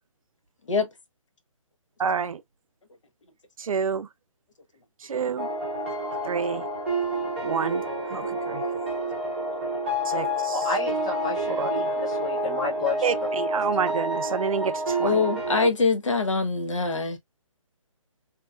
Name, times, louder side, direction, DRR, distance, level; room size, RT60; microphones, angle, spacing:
voice 1, 2.0-2.4 3.6-4.1 5.0-5.5 6.3-6.7 7.4-7.8 8.1-8.6 10.1-10.6 11.5-11.7 13.0-15.2, right 6 dB, 80° right, 0.5 m, -28 dB
sound 1, 5.4-15.7, right 1 dB, 20° right, 0.7 m, -29 dB
voice 2, 10.5-13.1, left 3 dB, 10° left, 0.4 m, -31 dB
voice 3, 15.0-17.2, left 4 dB, 65° left, 0.8 m, -24 dB
2.8 x 2.3 x 2.2 m
hypercardioid pair, 175°, 17 cm